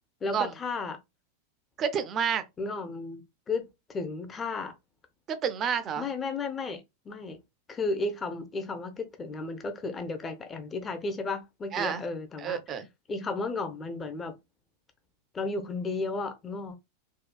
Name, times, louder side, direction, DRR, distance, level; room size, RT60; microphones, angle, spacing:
voice 1, 0.2-1.0 2.6-4.7 6.0-7.4 7.7-12.6 13.1-14.4 15.3-16.8, left 3 dB, 20° left, 0.5 m, -34 dB
voice 2, 1.8-2.4 5.3-6.1 11.7-12.0 12.4-12.9, right 7 dB, 30° right, 0.4 m, -29 dB
3.6 x 2.3 x 2.2 m
figure-of-eight pair, 90°, 0 cm